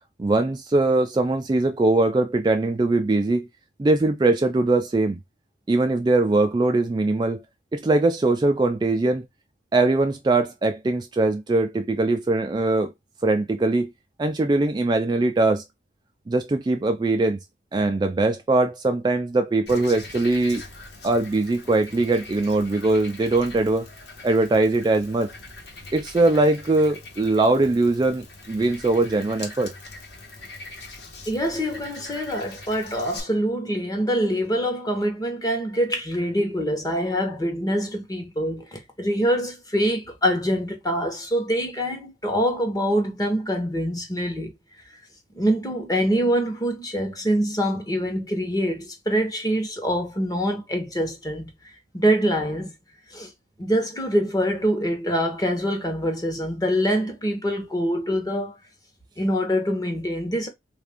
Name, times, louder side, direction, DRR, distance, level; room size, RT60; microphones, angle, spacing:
voice 1, 0.2-3.5 3.8-5.2 5.7-7.4 7.7-9.3 9.7-12.9 13.2-13.9 14.2-15.6 16.3-17.4 17.7-20.6 21.0-23.9 24.2-25.3 25.9-29.7, right 2 dB, 25° right, 0.3 m, -21 dB
Frog, 19.7-33.2, left 2 dB, 65° left, 1.2 m, -42 dB
voice 2, 31.3-44.5 45.3-51.5 51.9-52.7 53.1-53.3 53.6-58.5 59.2-60.5, equal, 20° left, 0.9 m, -25 dB
3.4 x 2.5 x 3.4 m
head